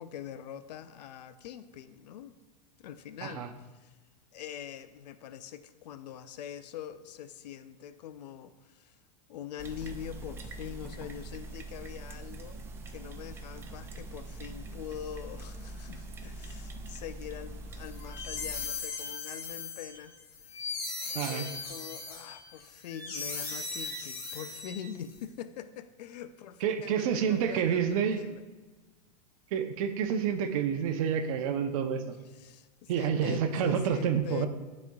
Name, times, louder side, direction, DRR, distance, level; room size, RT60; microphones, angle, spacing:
voice 1, 0.0-2.4 2.8-3.5 3.8-4.0 4.3-9.0 9.3-12.6 12.9-20.1 20.5-20.6 21.3-28.4 32.4-34.5, left 10 dB, 80° left, 12 dB, 0.5 m, -43 dB
sound 1, 9.6-18.7, right 2 dB, 10° right, 0.3 m, -43 dB
sound 2, 17.9-25.1, left 4 dB, 40° left, 1.8 m, -38 dB
voice 2, 21.1-21.5 26.6-28.2 29.5-32.2 32.9-34.5, right 7 dB, 60° right, 8 dB, 0.7 m, -29 dB
12.0 x 4.2 x 2.3 m, 1.2 s
supercardioid pair, 145°, 21 cm